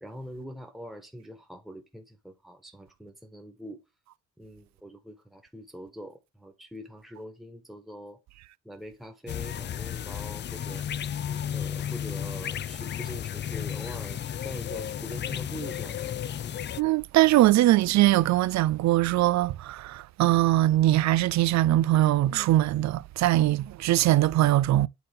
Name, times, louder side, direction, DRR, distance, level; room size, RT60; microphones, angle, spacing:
voice 1, 0.0-3.8 4.4-8.2 8.6-10.8 11.5-16.2, equal, ahead, 1.5 m, -43 dB
sound 1, 9.3-16.8, left 9 dB, 40° left, 0.4 m, -33 dB
voice 2, 16.8-24.9, right 15 dB, 65° right, 0.5 m, -22 dB
9.1 x 3.9 x 3.7 m
cardioid pair, 90°, 30 cm